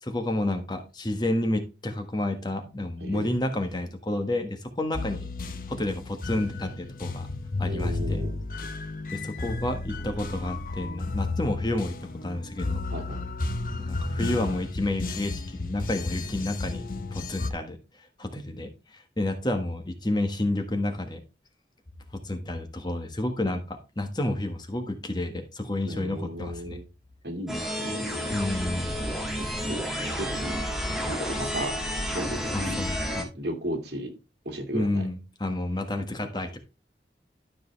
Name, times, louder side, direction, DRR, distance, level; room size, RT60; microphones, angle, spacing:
voice 1, 0.0-5.3 5.7-7.3 7.6-8.2 9.1-12.8 13.7-16.8 17.1-17.8 18.2-21.2 22.1-26.8 28.3-29.0 32.5-33.3 34.7-36.6, left 1 dB, 25° left, 6 dB, 1.3 m, -30 dB
voice 2, 3.0-3.3 7.7-8.4 12.9-13.2 25.9-26.8 27.2-28.3 29.4-29.8 30.2-30.6 31.0-31.8 32.1-32.9 33.3-34.1 34.4-35.0, right 1 dB, 75° right, 5 dB, 2.4 m, -35 dB
sound 1, 4.9-17.5, left 3 dB, 50° left, 0.9 m, -33 dB
sound 2, 27.5-33.2, equal, ahead, 1.7 m, -31 dB
12.5 x 5.2 x 3.3 m, 0.29 s
head